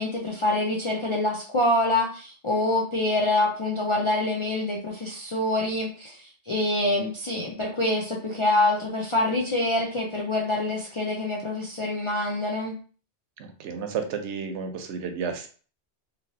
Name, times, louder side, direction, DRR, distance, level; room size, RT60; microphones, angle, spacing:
voice 1, 0.0-12.7, left 2 dB, 50° left, -3 dB, 0.3 m, -26 dB
voice 2, 13.4-15.5, right 6 dB, 80° right, 6 dB, 0.9 m, -32 dB
3.0 x 2.7 x 2.7 m, 0.40 s
omnidirectional pair, 1.2 m